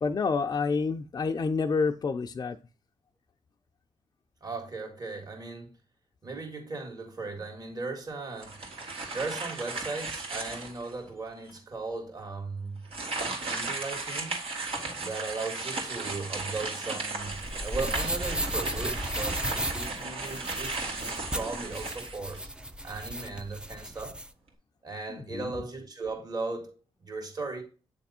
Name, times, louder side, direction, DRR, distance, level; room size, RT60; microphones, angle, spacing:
voice 1, 0.0-2.6 25.1-25.5, left 4 dB, 40° left, 0.5 m, -28 dB
voice 2, 4.4-5.7 6.2-8.6 9.1-12.8 13.4-14.4 15.0-22.4 22.8-24.2 24.8-26.7 27.0-27.6, right 3 dB, 40° right, 2.0 m, -37 dB
sound 1, 8.4-10.9 11.5-11.6 12.8-22.6, right 3 dB, 75° right, 2.2 m, -35 dB
sound 2, 17.2-24.3, right 1 dB, 10° right, 0.6 m, -35 dB
8.3 x 3.4 x 4.2 m
cardioid pair, 75°, 10 cm